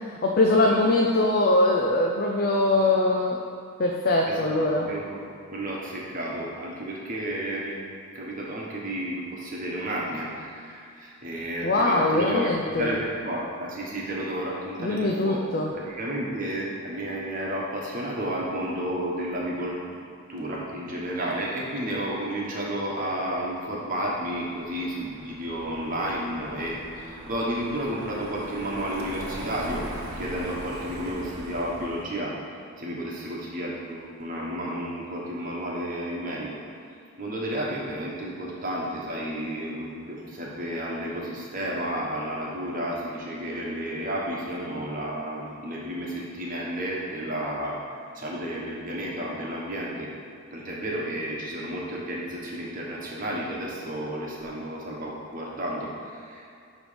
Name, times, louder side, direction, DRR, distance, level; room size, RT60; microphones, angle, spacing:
voice 1, 0.1-3.4 3.8-4.9 11.6-13.0 14.8-15.7, left 2 dB, 45° left, 0 dB, 0.5 m, -22 dB
voice 2, 4.7-7.7 8.1-19.9 20.3-29.9 30.1-32.3 32.8-36.6 37.2-47.8 48.1-50.1 50.5-56.4, right 1 dB, 40° right, -4 dB, 1.2 m, -32 dB
Car passing by, 23.7-32.2, right 1 dB, 80° right, 0.9 m, -40 dB
9.3 x 3.2 x 5.0 m, 2.5 s
head